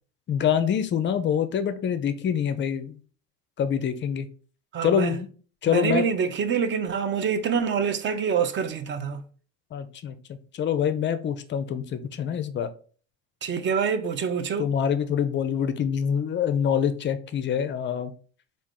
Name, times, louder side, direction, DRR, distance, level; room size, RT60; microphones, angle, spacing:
voice 1, 0.3-3.0 3.6-4.3 4.8-5.3 5.6-6.0 9.7-12.7 14.6-18.1, left 8 dB, 30° left, 0.4 m, -25 dB
voice 2, 4.7-5.2 5.7-9.2 13.4-14.7, right 6 dB, 30° right, 0.5 m, -26 dB
3.5 x 2.5 x 3.6 m
hypercardioid pair, 80°, 39 cm